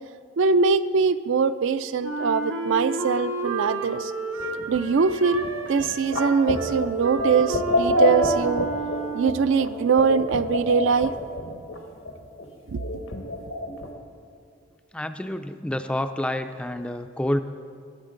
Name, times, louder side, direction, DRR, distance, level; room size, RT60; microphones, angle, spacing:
voice 1, 0.4-4.1 4.7-8.7 9.1-11.1 12.7-12.8, right 5 dB, 70° right, 13 dB, 0.4 m, -22 dB
Wind instrument woodwind instrument, 2.0-9.6, right 3 dB, 90° right, 1.1 m, -31 dB
sound 1, 4.4-11.8 12.1-12.2 12.4-12.5 12.8-13.9, left 1 dB, 85° left, 1.4 m, -27 dB
voice 2, 14.9-17.4, left 1 dB, 5° left, 9 dB, 0.3 m, -28 dB
20.0 x 8.6 x 3.8 m, 2.4 s
head